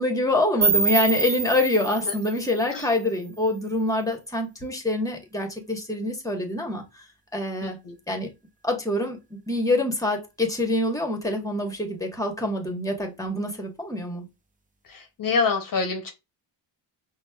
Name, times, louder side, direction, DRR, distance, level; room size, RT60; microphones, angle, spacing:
voice 1, 0.0-6.8 7.3-7.8 8.1-8.3 8.6-14.2, left 1 dB, 5° left, 1.1 m, -26 dB
sound 1, 0.6-3.5, right 4 dB, 20° right, 0.5 m, -27 dB
voice 2, 7.6-7.9 14.9-16.1, left 4 dB, 45° left, 0.8 m, -26 dB
5.1 x 2.1 x 2.2 m
cardioid pair, 85°, 47 cm